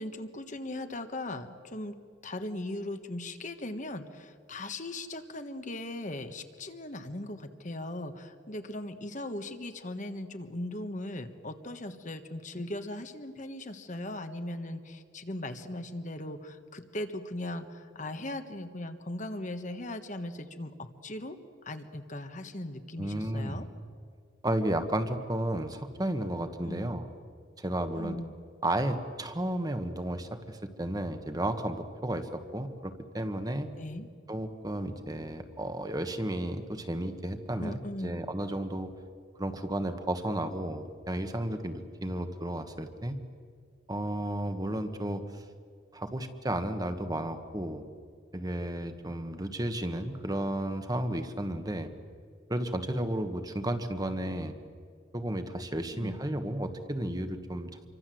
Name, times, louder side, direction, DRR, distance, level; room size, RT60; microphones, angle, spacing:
voice 1, 0.0-1.9 2.2-21.4 21.6-23.7 26.6-26.9 27.9-28.4 33.7-34.1 37.6-38.2 55.9-56.2, left 1 dB, 40° left, 8 dB, 1.5 m, -38 dB
voice 2, 23.0-23.7 24.4-27.1 27.6-28.2 28.6-33.7 34.3-38.9 39.4-43.2 43.9-45.4 45.9-47.9 48.3-51.9 52.5-54.5 55.1-57.7, right 1 dB, 20° right, 8 dB, 1.4 m, -33 dB
28.0 x 24.0 x 7.8 m, 2.1 s
head